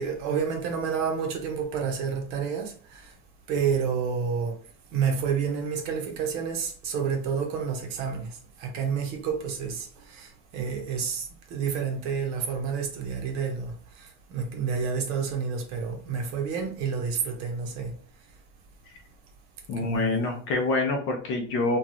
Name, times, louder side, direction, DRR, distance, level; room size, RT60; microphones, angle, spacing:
voice 1, 0.0-3.1 3.5-4.6 4.9-11.3 11.5-17.9 19.8-20.2, right 6 dB, 60° right, 0.8 m, -29 dB
voice 2, 19.7-21.8, left 2 dB, 35° left, 0.6 m, -26 dB
3.1 x 2.3 x 2.5 m
supercardioid pair, 160°, 34 cm